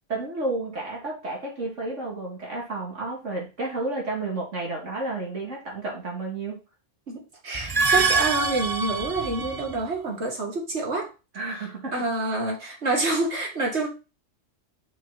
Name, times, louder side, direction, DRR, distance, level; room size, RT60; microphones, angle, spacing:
voice 1, 0.1-6.6 11.3-11.9, right 2 dB, 85° right, 2.9 m, -31 dB
voice 2, 7.1-11.1 11.9-13.9, right 2 dB, 65° right, 2.4 m, -27 dB
sound 1, 7.5-9.8, right 3 dB, 30° right, 0.4 m, -24 dB
6.3 x 5.7 x 4.1 m
omnidirectional pair, 1.2 m